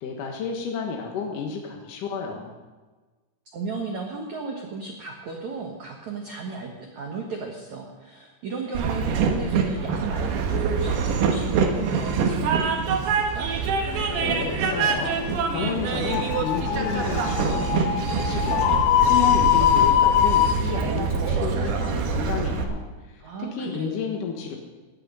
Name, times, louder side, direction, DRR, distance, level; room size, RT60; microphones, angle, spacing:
voice 1, 0.0-2.5 14.2-15.2 15.5-17.7 18.0-24.6, left 6 dB, 65° left, 1 dB, 2.1 m, -31 dB
voice 2, 3.5-13.5 23.2-24.0, right 4 dB, 85° right, 1 dB, 1.6 m, -35 dB
Train, 8.7-22.6, right 5 dB, 65° right, 2.8 m, -25 dB
sound 1, 13.9-20.5, left 11 dB, 85° left, 3.3 m, -23 dB
17.0 x 11.0 x 5.5 m, 1.3 s
omnidirectional pair, 5.7 m